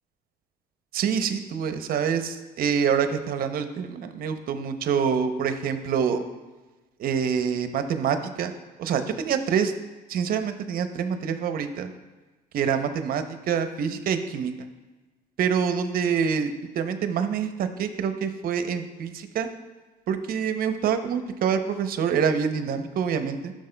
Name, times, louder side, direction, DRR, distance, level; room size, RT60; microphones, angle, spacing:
voice 1, 0.9-6.2 7.0-8.5 8.8-9.7 10.1-11.9 12.5-14.5 15.4-19.5 20.1-23.5, right 7 dB, 60° right, 9 dB, 0.7 m, -26 dB
12.0 x 6.3 x 2.2 m, 1.2 s
cardioid pair, 110°, 17 cm